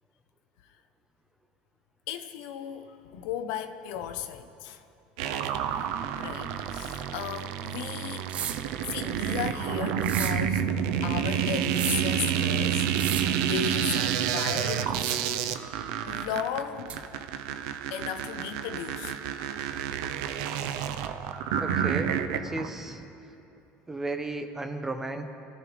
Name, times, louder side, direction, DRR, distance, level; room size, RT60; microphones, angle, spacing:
voice 1, 2.1-4.8 6.2-8.3 8.9-10.7 11.0-15.0 16.0-17.0 17.9-19.2, left 9 dB, 80° left, 0.9 m, -36 dB
sound 1, 5.2-22.7, right 9 dB, 85° right, 0.8 m, -29 dB
sound 2, 8.3-8.7 10.0-10.4 11.6-12.1 12.9-13.4 14.9-15.4 16.9-17.0, right 8 dB, 35° right, 0.7 m, -35 dB
voice 2, 21.6-23.1 23.9-25.3, right 2 dB, 10° right, 1.0 m, -34 dB
27.5 x 14.0 x 3.4 m
cardioid pair, 155°, 4 cm